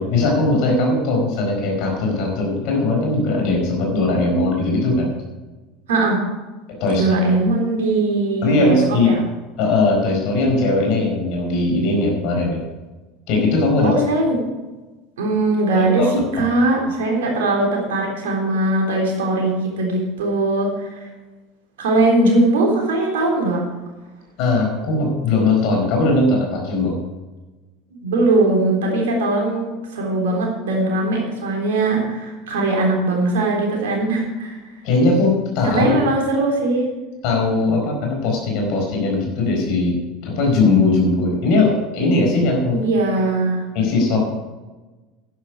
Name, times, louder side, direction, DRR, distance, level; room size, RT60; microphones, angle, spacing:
voice 1, 0.0-5.1 6.8-7.2 8.4-9.1 9.6-12.6 13.3-13.9 15.7-16.1 24.4-27.0 34.8-35.9 37.2-40.0 40.2-42.8 43.7-44.2, left 2 dB, 50° left, 0 dB, 4.7 m, -19 dB
voice 2, 5.9-6.2 7.0-8.8 9.1-9.2 13.8-14.4 15.2-16.1 16.3-21.1 21.8-23.6 28.0-34.6 35.7-36.9 42.7-43.6 44.1-44.2, right 2 dB, 65° right, 0 dB, 3.6 m, -20 dB
11.5 x 11.0 x 4.8 m, 1.2 s
figure-of-eight pair, 75°, 0 cm